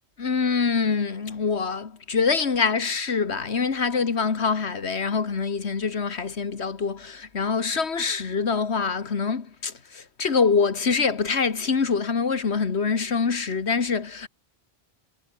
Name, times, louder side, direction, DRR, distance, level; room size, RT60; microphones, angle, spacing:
voice 1, 0.2-14.3, left 5 dB, 80° left, 1.9 m, -25 dB
omnidirectional pair, 1.1 m